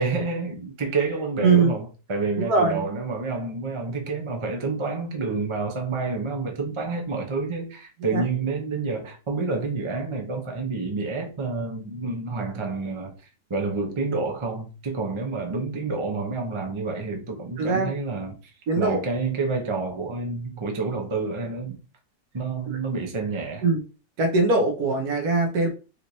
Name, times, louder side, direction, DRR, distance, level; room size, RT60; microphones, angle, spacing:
voice 1, 0.0-13.2 13.5-18.4 18.8-21.8 22.3-23.7, right 4 dB, 40° right, 0.4 m, -29 dB
voice 2, 1.4-1.8 2.4-2.9 8.1-8.2 17.6-17.9 18.7-19.0 22.7-22.8 23.6-23.8 24.2-25.7, right 3 dB, 65° right, 1.3 m, -21 dB
4.2 x 3.1 x 2.7 m
omnidirectional pair, 1.9 m